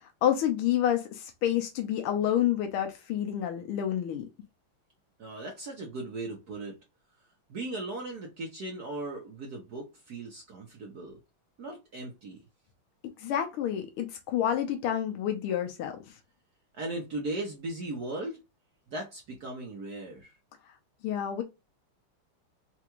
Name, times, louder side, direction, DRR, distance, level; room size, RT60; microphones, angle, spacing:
voice 1, 0.0-4.2 13.2-16.0 21.0-21.4, left 10 dB, 85° left, 1.6 m, -29 dB
voice 2, 5.2-6.8 7.5-11.2 11.6-12.4 16.7-18.4 18.9-20.4, right 2 dB, 55° right, 1.2 m, -37 dB
4.5 x 2.5 x 2.9 m
omnidirectional pair, 2.3 m